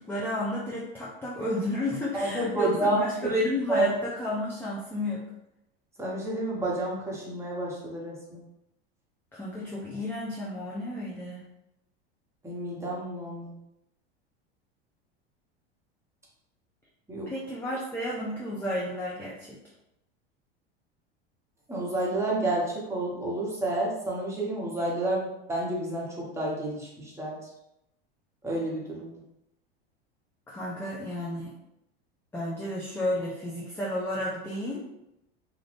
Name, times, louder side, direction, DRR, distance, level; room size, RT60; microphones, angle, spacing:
voice 1, 0.0-5.2 9.3-11.4 17.3-19.6 30.5-31.5 32.3-34.8, left 1 dB, 5° left, -5 dB, 0.6 m, -32 dB
voice 2, 2.1-3.4 3.7-3.9 6.0-8.4 12.4-13.5 17.1-17.3 21.7-27.4 28.4-29.2, right 2 dB, 10° right, -5 dB, 1.1 m, -30 dB
2.7 x 2.5 x 3.4 m, 0.84 s
hypercardioid pair, 90°, 32 cm